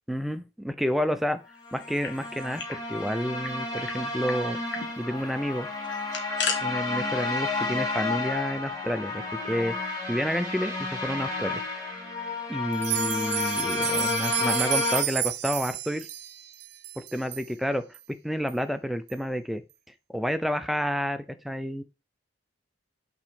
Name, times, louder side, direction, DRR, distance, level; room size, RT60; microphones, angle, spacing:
voice 1, 0.1-1.4 1.7-4.6 5.0-5.7 6.6-9.7 10.1-11.6 12.5-16.1 17.0-18.0 18.2-19.6 20.1-21.8, equal, ahead, 9 dB, 0.5 m, -30 dB
sound 1, 1.6-15.0, left 3 dB, 20° left, 1.9 m, -31 dB
sound 2, 1.7-2.8 3.1-3.2 3.4-4.0 4.3-4.4 4.7-4.9 5.8-6.6, left 5 dB, 80° left, 1.5 m, -34 dB
sound 3, 12.7-17.5 17.9-18.0 18.5-18.6 19.1-19.2, right 13 dB, 65° right, 0.5 m, -31 dB
5.9 x 4.0 x 5.1 m, 0.29 s
head